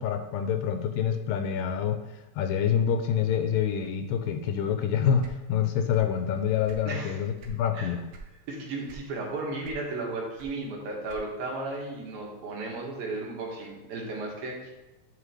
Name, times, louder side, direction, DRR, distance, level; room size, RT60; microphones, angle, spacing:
voice 1, 0.0-2.0 2.4-5.2 5.5-8.0, left 8 dB, 85° left, 6 dB, 2.4 m, -26 dB
sound 1, 5.2-6.2 6.5-7.6 8.1-8.4 8.8-9.3 9.6-11.5, right 4 dB, 70° right, 1.7 m, -46 dB
voice 2, 6.9-7.2 7.7-7.9 8.5-14.7, right 2 dB, 85° right, -1 dB, 3.3 m, -34 dB
9.9 x 5.6 x 3.3 m, 1.0 s
omnidirectional pair, 4.1 m